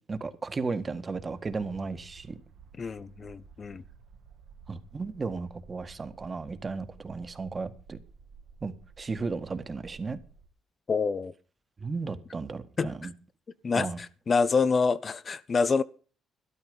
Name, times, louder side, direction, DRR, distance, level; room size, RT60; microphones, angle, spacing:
voice 1, 0.1-2.4 4.7-8.0 8.6-10.2 11.8-13.1 13.8-14.0, right 4 dB, 30° right, 1.8 m, -34 dB
sound 1, 1.1-10.5, right 5 dB, 75° right, 2.0 m, -54 dB
voice 2, 2.8-3.8 10.9-11.3 12.8-12.9 13.6-13.9 14.3-15.8, left 4 dB, 40° left, 0.8 m, -26 dB
13.0 x 12.0 x 5.4 m
cardioid pair, 90°, 0 cm